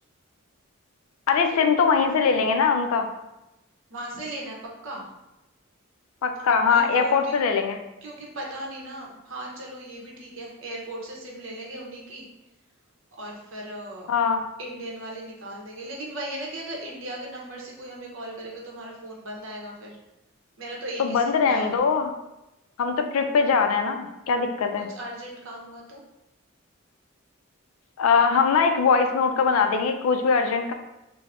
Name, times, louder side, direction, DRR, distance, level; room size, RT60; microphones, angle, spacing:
voice 1, 1.3-3.1 6.2-7.8 14.1-14.4 21.0-22.1 22.8-24.9 28.0-30.7, left 5 dB, 75° left, 6 dB, 0.3 m, -21 dB
voice 2, 3.9-4.6 4.8-5.1 6.7-7.3 8.0-12.2 13.2-14.1 14.6-20.0 20.6-21.7 24.8-26.0, right 1 dB, 65° right, -2 dB, 0.7 m, -37 dB
3.3 x 2.0 x 2.4 m, 0.94 s
head